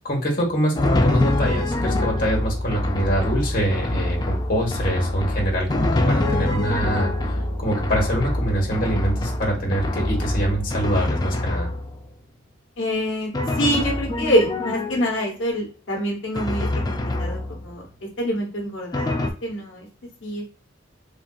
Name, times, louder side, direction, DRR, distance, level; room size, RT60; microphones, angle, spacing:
voice 1, 0.0-7.1 7.6-11.7, right 1 dB, 50° left, -1 dB, 1.1 m, -24 dB
Drum, 0.7-12.1 13.3-15.3 16.3-17.8 18.9-19.3, left 1 dB, 20° left, 0.4 m, -25 dB
voice 2, 12.8-13.3 13.6-17.9 18.2-19.1 19.4-19.9 20.2-20.5, equal, 80° left, 0 dB, 0.9 m, -25 dB
3.5 x 2.6 x 2.2 m, 0.38 s
head